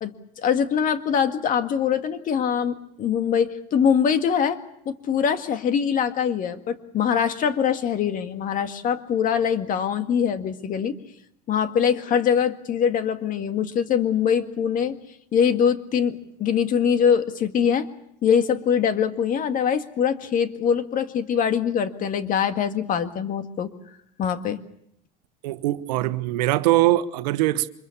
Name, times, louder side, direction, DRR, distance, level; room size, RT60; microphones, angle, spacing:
voice 1, 0.0-4.6 4.9-10.9 11.5-15.0 15.3-17.9 18.2-23.7 24.2-24.6, left 7 dB, 40° left, 1.9 m, -23 dB
voice 2, 25.4-27.7, right 16 dB, 80° right, 1.2 m, -22 dB
25.0 x 22.0 x 7.1 m
supercardioid pair, 115°, 21 cm